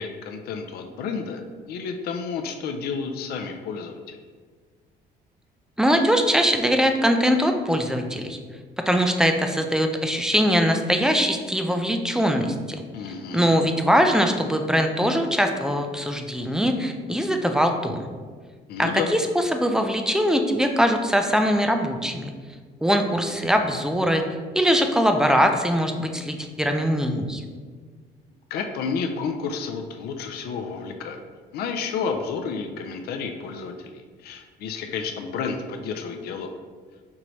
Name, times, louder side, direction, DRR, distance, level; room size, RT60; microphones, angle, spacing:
voice 1, 0.0-4.2 12.9-13.6 18.7-19.1 28.5-31.2 31.5-36.5, left 5 dB, 70° left, 5 dB, 0.4 m, -31 dB
voice 2, 5.8-8.4 8.9-12.8 13.3-18.1 18.8-22.3 22.8-24.2 24.5-27.4, equal, 5° right, 5 dB, 0.3 m, -22 dB
4.5 x 2.6 x 3.1 m, 1.5 s
cardioid pair, 110°, 17 cm